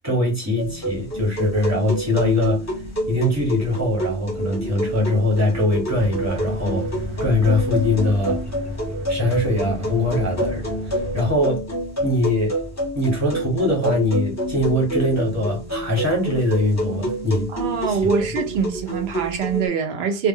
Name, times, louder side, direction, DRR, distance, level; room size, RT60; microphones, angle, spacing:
voice 1, 0.0-2.6 3.1-6.9 7.2-8.4 9.1-11.6 12.0-12.5 12.9-17.5 17.9-18.1, left 1 dB, 15° right, 0.9 m, -22 dB
sound 1, 0.6-19.7, equal, 20° left, 0.6 m, -28 dB
sound 2, 5.9-11.4, left 1 dB, 35° right, 0.5 m, -32 dB
voice 2, 17.5-20.3, right 6 dB, 70° right, 0.8 m, -24 dB
2.1 x 2.0 x 3.5 m
omnidirectional pair, 1.1 m